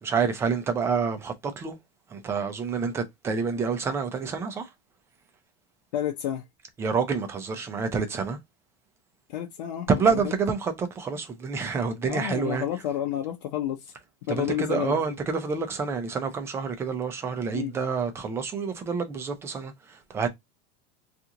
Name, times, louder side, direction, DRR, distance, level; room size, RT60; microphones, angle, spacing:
voice 1, 0.0-1.8 2.1-4.7 6.8-8.4 9.9-12.7 14.3-20.3, right 5 dB, 10° right, 0.4 m, -28 dB
voice 2, 5.9-6.4 9.3-10.3 12.1-13.9 14.3-15.0 17.5-17.8, left 11 dB, 90° left, 0.7 m, -30 dB
2.9 x 2.4 x 3.6 m
supercardioid pair, 175°, 21 cm